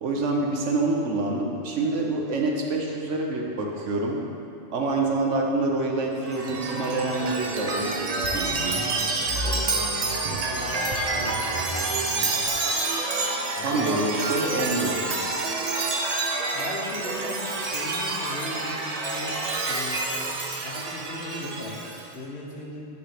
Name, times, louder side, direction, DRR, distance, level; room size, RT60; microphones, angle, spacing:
voice 1, 0.0-4.2 4.7-8.8 13.6-15.0, right 2 dB, 70° right, 0 dB, 1.2 m, -26 dB
Chime, 6.2-22.1, right 3 dB, 40° right, 0.6 m, -28 dB
voice 2, 8.4-9.3 9.7-12.3 13.5-13.9 16.5-20.3 20.6-21.7 22.1-22.9, left 1 dB, 55° left, -3 dB, 1.3 m, -38 dB
9.6 x 3.4 x 5.8 m, 2.6 s
omnidirectional pair, 1.3 m